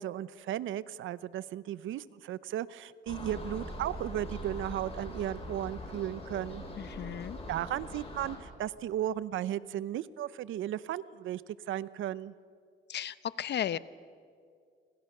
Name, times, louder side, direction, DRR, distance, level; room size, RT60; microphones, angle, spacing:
voice 1, 0.0-6.6 7.5-11.4 11.7-12.3, right 12 dB, 80° right, 18 dB, 0.8 m, -35 dB
sound 1, 3.1-8.4, left 1 dB, 30° left, 7.6 m, -42 dB
voice 2, 6.8-7.4 12.9-13.8, left 10 dB, 60° left, 16 dB, 0.9 m, -34 dB
29.0 x 25.5 x 6.7 m, 2.2 s
cardioid pair, 90°, 20 cm